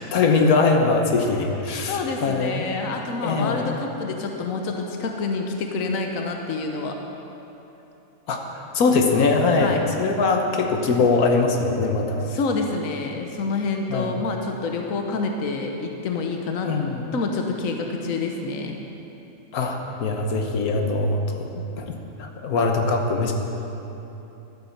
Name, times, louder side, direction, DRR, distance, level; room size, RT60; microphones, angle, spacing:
voice 1, 0.0-2.7 3.2-3.7 8.3-12.3 13.9-14.2 16.6-17.0 19.5-23.3, left 3 dB, 85° left, 3 dB, 1.6 m, -22 dB
voice 2, 1.8-7.0 9.6-9.9 12.2-16.7 17.1-18.8, left 3 dB, 70° left, 3 dB, 1.4 m, -27 dB
12.5 x 9.5 x 7.2 m, 3.0 s
omnidirectional pair, 1.5 m